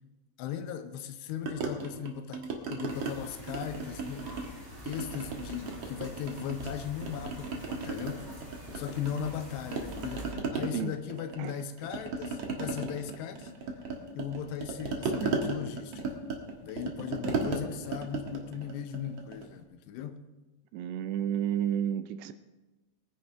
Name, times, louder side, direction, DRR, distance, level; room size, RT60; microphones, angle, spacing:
voice 1, 0.4-4.3 4.8-8.3 8.7-13.5 14.2-16.0 16.6-20.3, left 9 dB, 80° left, 2.6 m, -38 dB
sound 1, 1.5-3.1 3.5-4.5 4.9-6.7 7.0-9.4 9.7-19.5, right 4 dB, 60° right, 1.7 m, -35 dB
sound 2, 2.9-10.3, equal, 5° right, 3.1 m, -46 dB
voice 2, 20.7-22.3, right 10 dB, 80° right, 2.6 m, -31 dB
22.0 x 10.0 x 3.4 m
omnidirectional pair, 5.2 m